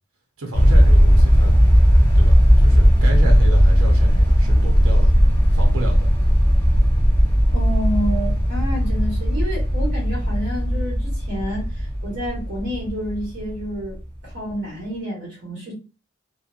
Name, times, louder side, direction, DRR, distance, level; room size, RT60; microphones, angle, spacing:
voice 1, 0.4-1.5 2.1-5.1 5.5-6.1, right 1 dB, 85° right, 0.8 m, -30 dB
sound 1, 0.5-13.8, equal, 10° left, 0.7 m, -16 dB
voice 2, 7.5-14.0 14.2-15.7, equal, 55° right, 1.5 m, -29 dB
3.1 x 2.1 x 2.5 m
head